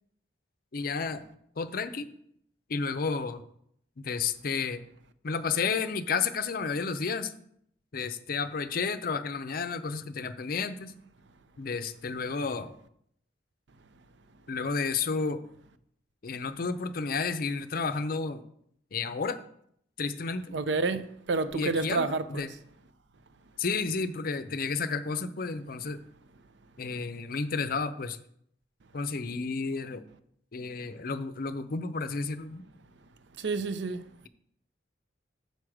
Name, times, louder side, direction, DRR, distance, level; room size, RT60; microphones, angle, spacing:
voice 1, 0.7-1.2 1.6-2.1 2.7-3.4 4.0-4.8 5.2-7.3 7.9-10.9 11.6-12.7 14.5-15.4 16.2-18.4 18.9-19.4 20.0-20.6 21.5-22.5 23.6-26.0 26.8-28.2 28.9-30.1 30.5-32.6, left 4 dB, 50° left, 0.5 m, -31 dB
voice 2, 20.5-21.0 21.3-22.5 33.4-34.3, right 3 dB, 75° right, 0.5 m, -29 dB
6.6 x 6.3 x 4.9 m
head